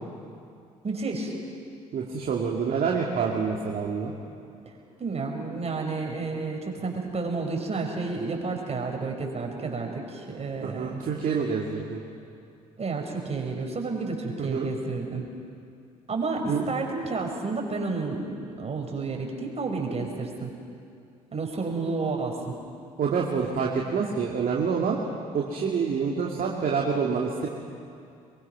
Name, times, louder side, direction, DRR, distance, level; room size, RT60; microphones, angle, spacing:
voice 1, 0.8-1.3 5.0-11.0 12.8-15.2 16.1-20.5 21.3-22.5, right 3 dB, 35° right, 2 dB, 5.4 m, -31 dB
voice 2, 1.9-4.1 10.6-12.0 14.4-14.7 16.5-16.7 23.0-25.0 25.3-27.5, right 5 dB, 50° right, -2 dB, 2.5 m, -27 dB
25.0 x 22.5 x 6.1 m, 2.5 s
hypercardioid pair, 50°, 18 cm